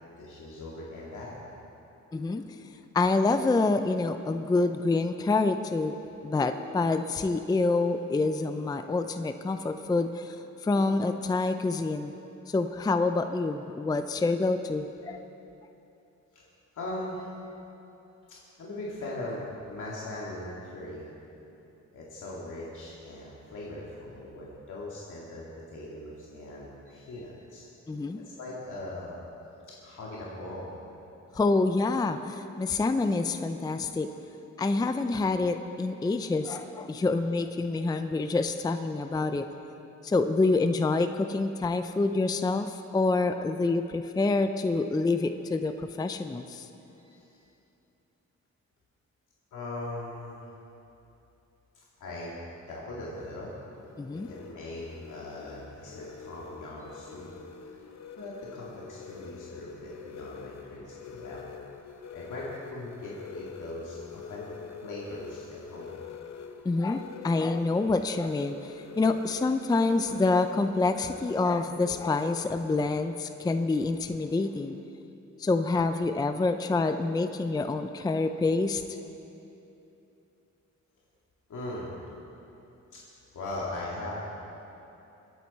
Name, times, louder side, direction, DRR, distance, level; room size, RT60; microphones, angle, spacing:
voice 1, 0.0-1.4 6.9-7.1 16.3-16.5 16.7-17.3 18.3-21.1 21.9-25.4 25.7-27.6 28.4-29.2 29.8-30.7 37.0-37.1 46.9-47.4 49.5-50.4 52.0-52.3 52.7-53.6 54.1-57.3 57.6-57.8 58.2-61.4 62.1-66.0 66.8-67.0 81.5-82.0 83.3-84.3, left 1 dB, 80° left, -6 dB, 2.3 m, -40 dB
voice 2, 2.1-6.0 6.2-12.1 12.5-15.2 27.9-28.2 31.3-34.1 34.6-39.5 40.0-46.7 54.0-54.3 66.6-74.8 75.4-79.0, left 3 dB, 15° left, 8 dB, 0.4 m, -27 dB
sound 1, 53.2-72.9, left 6 dB, 65° left, 0.8 m, -45 dB
23.5 x 9.0 x 4.3 m, 2.9 s
wide cardioid pair, 120°, 30 cm